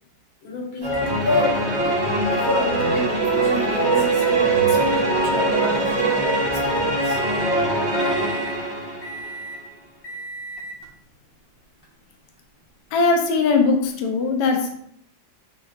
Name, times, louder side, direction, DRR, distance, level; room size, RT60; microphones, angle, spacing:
voice 1, 0.4-2.0 2.3-7.2, left 2 dB, 90° left, -3 dB, 2.1 m, -29 dB
sound 1, 0.8-9.4, right 2 dB, 40° right, 1.5 m, -22 dB
Microwave oven, 0.9-6.6 7.0-7.6 8.0-8.6 9.0-9.6 10.0-10.9 11.8-11.9 13.9-14.0, equal, 40° left, 1.0 m, -37 dB
voice 2, 12.9-14.7, left 4 dB, 70° left, 3 dB, 1.2 m, -20 dB
6.0 x 3.6 x 2.4 m, 0.69 s
omnidirectional pair, 2.0 m